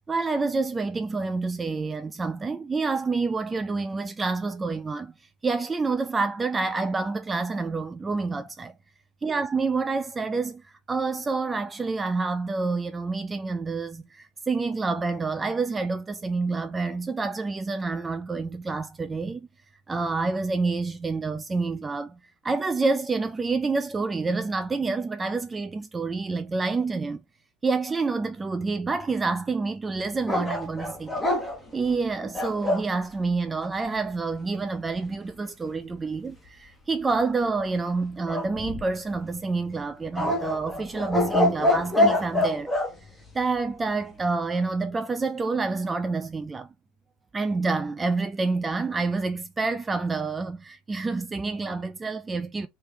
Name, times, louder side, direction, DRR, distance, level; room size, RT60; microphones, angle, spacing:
voice 1, 0.1-5.1 5.4-8.7 9.2-19.5 19.9-22.2 22.4-27.2 27.6-31.2 31.7-42.7 43.3-46.7 47.3-52.7, right 3 dB, 15° right, 0.3 m, -28 dB
sound 1, 30.3-32.9 38.3-39.1 40.1-42.9, left 1 dB, 5° left, 1.3 m, -25 dB
3.2 x 2.8 x 3.6 m
supercardioid pair, 125°, 0 cm